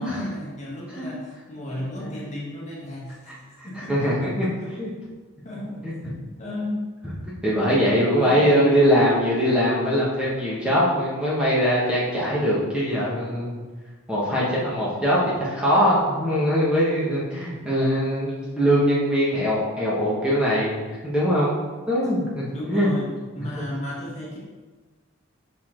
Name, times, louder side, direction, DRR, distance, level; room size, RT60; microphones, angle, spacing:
voice 1, 0.0-4.7 5.4-5.9 6.2-6.8 7.5-8.6 22.0-22.1 22.5-24.4, left 1 dB, 35° left, -5 dB, 1.4 m, -34 dB
voice 2, 3.3-4.5 4.8-4.9 5.8-6.1 7.4-13.6 14.1-21.6 21.9-22.9, equal, 5° right, -7 dB, 1.4 m, -22 dB
6.1 x 5.6 x 3.8 m, 1.3 s
head